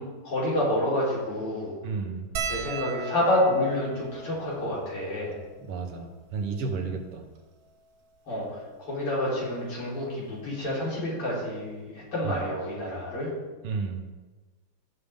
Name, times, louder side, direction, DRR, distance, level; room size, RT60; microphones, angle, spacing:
voice 1, 0.0-1.8 2.5-5.4 8.3-13.3, left 1 dB, 85° left, -7 dB, 5.0 m, -28 dB
voice 2, 1.8-2.3 5.6-7.3 12.2-12.4 13.6-14.0, right 4 dB, 90° right, 4 dB, 2.1 m, -32 dB
sound 1, 2.3-7.0 7.7-7.8 8.0-8.2 9.4-9.7 11.1-11.2 11.5-11.6, right 4 dB, 50° right, 1.2 m, -38 dB
15.5 x 6.9 x 3.7 m, 1.3 s
omnidirectional pair, 2.4 m